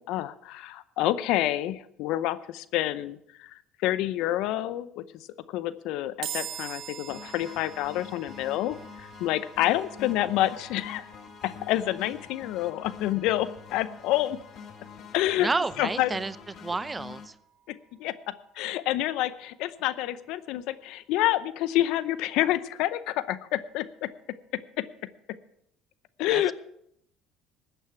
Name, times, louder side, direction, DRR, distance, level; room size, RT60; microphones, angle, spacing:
voice 1, 0.0-11.1 11.4-14.4 15.1-15.5 15.8-16.1 17.7-24.1 24.8-24.9 26.2-26.5, left 14 dB, 70° left, 16 dB, 0.6 m, -28 dB
sound 1, 6.2-19.6, right 9 dB, 60° right, 1.6 m, -46 dB
sound 2, 7.1-17.3, left 7 dB, 55° left, 1.7 m, -46 dB
voice 2, 15.4-16.4 16.6-17.4 26.3-26.5, right 3 dB, 20° right, 16 dB, 0.7 m, -30 dB
14.0 x 9.0 x 5.9 m, 0.73 s
supercardioid pair, 75°, 0 cm